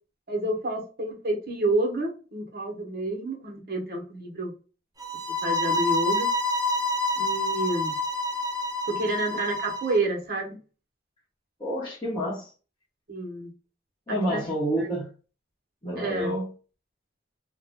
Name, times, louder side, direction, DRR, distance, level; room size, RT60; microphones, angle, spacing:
voice 1, 0.3-4.5 5.4-6.3 7.2-7.9 9.0-10.6 13.1-13.5 14.1-14.4 14.8-14.9 16.0-16.3, right 2 dB, 50° right, 1.0 m, -29 dB
sound 1, 5.0-10.0, left 2 dB, 20° right, 0.5 m, -27 dB
voice 2, 11.6-12.5 14.1-15.1 15.8-16.5, equal, 25° left, 0.9 m, -28 dB
2.5 x 2.2 x 3.4 m
head